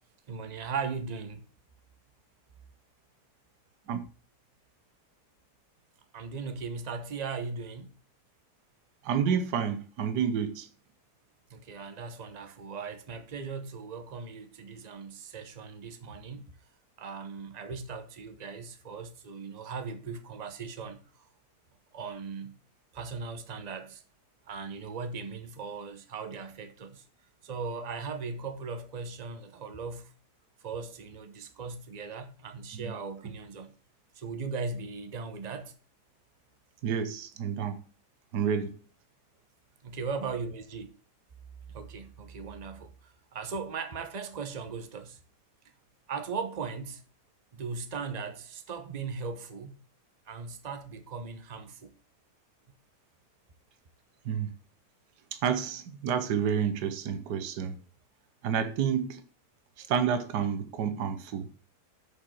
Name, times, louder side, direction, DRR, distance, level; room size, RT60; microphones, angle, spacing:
voice 1, 0.3-1.4 6.1-7.9 11.5-16.4 17.0-21.3 21.9-22.6 22.9-24.0 24.5-27.0 27.4-30.1 30.6-33.7 34.1-35.7 39.8-40.9 41.7-45.2 46.1-47.0 47.5-49.7 50.3-51.9, right 5 dB, 30° right, 0.9 m, -38 dB
voice 2, 9.0-10.7 32.7-32.9 36.8-37.8 38.3-38.7 54.2-54.5 55.3-57.7 58.4-59.2 59.8-61.5, right 7 dB, 80° right, 1.5 m, -29 dB
6.8 x 5.5 x 7.2 m
omnidirectional pair, 1.7 m